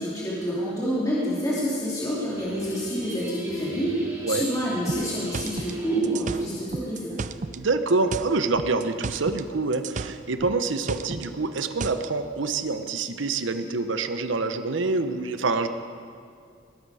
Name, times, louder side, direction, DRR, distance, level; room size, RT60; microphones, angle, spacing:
voice 1, 0.0-4.0 4.3-7.2, equal, 20° left, -8 dB, 2.7 m, -28 dB
sound 1, 2.4-6.1, equal, 15° right, 2.4 m, -39 dB
sound 2, 4.9-7.6 7.9-9.5 9.7-12.1, right 4 dB, 40° right, 0.4 m, -33 dB
voice 2, 7.6-15.7, right 3 dB, 85° right, 9 dB, 0.8 m, -26 dB
20.0 x 12.0 x 4.9 m, 2.3 s
head